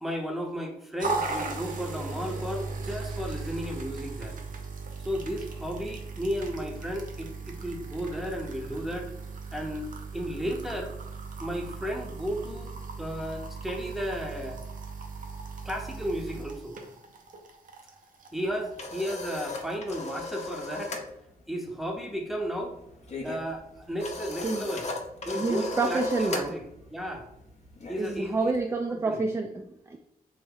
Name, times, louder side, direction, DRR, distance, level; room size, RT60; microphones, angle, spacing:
voice 1, 0.0-4.4 5.0-9.1 9.5-11.0 11.4-14.6 15.6-16.8 18.3-20.9 21.5-22.8 23.2-24.9 25.2-26.6 26.9-27.3 27.9-28.5 28.9-29.2, equal, ahead, 2 dB, 0.7 m, -34 dB
sound 1, 1.0-19.8, right 4 dB, 60° right, 0.6 m, -38 dB
sound 2, 18.4-21.1 21.4-21.7 21.9-28.6, left 2 dB, 45° left, 0.7 m, -37 dB
voice 2, 25.3-26.5 28.0-30.0, right 3 dB, 15° right, 3 dB, 0.3 m, -28 dB
3.4 x 2.5 x 3.6 m, 0.83 s
cardioid pair, 95°, 15 cm